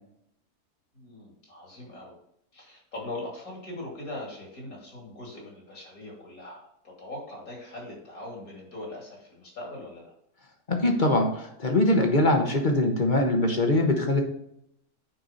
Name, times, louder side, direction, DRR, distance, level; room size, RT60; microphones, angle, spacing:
voice 1, 0.9-2.1 2.5-6.7 7.0-10.1, left 1 dB, 65° left, -2 dB, 3.3 m, -41 dB
voice 2, 10.7-14.2, left 1 dB, 35° left, 3 dB, 1.2 m, -22 dB
9.1 x 4.7 x 4.0 m, 0.75 s
omnidirectional pair, 1.6 m